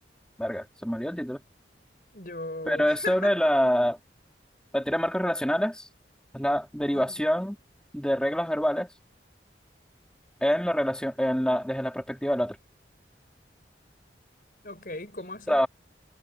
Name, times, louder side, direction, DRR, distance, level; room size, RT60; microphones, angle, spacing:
voice 1, 0.4-1.4 2.7-4.0 4.7-5.9 6.3-7.6 7.9-8.9 10.4-12.6 15.5-15.7, equal, 5° left, 4.3 m, -26 dB
voice 2, 2.1-3.5 6.9-7.2 14.6-15.6, left 2 dB, 50° left, 5.3 m, -37 dB
head